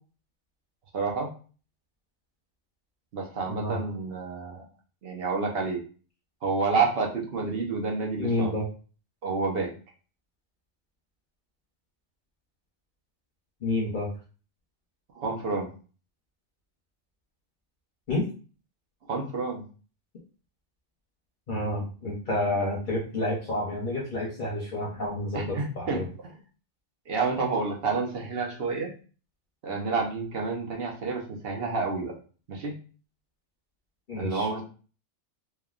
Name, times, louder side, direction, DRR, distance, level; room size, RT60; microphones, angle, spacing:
voice 1, 0.9-1.3 3.1-4.6 5.0-5.8 6.4-8.5 9.2-9.7 15.1-15.7 19.1-19.6 25.3-26.0 27.1-28.9 29.6-32.2 32.5-32.7 34.1-34.6, right 4 dB, 60° right, 0 dB, 0.9 m, -29 dB
voice 2, 3.5-3.8 8.2-8.7 13.6-14.1 18.1-18.2 21.5-26.1 34.1-34.5, left 1 dB, 50° left, -3 dB, 0.8 m, -29 dB
3.3 x 2.2 x 2.4 m, 0.38 s
omnidirectional pair, 1.2 m